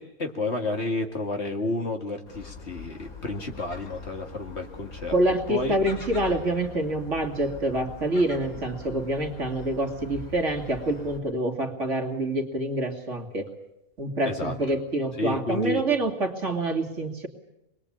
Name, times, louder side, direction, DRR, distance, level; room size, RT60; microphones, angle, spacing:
voice 1, 0.0-5.1 5.5-5.7 14.2-14.8 15.2-15.8, left 2 dB, 45° left, 4 dB, 2.5 m, -31 dB
Gull seagull, 2.3-11.2, left 4 dB, 75° left, 3.2 m, -43 dB
voice 2, 5.1-13.5 14.0-17.3, right 1 dB, 55° right, 2 dB, 2.9 m, -26 dB
27.0 x 21.5 x 8.7 m, 0.89 s
omnidirectional pair, 1.5 m